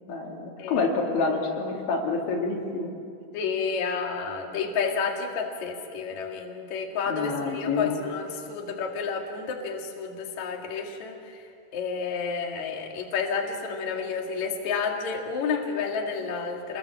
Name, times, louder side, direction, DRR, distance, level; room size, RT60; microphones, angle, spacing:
voice 1, 0.1-2.9 7.1-8.0, left 4 dB, 85° left, -1 dB, 5.1 m, -28 dB
voice 2, 3.3-11.4 11.7-16.8, left 5 dB, 50° left, 0 dB, 3.0 m, -30 dB
28.0 x 21.5 x 7.3 m, 2.4 s
omnidirectional pair, 5.2 m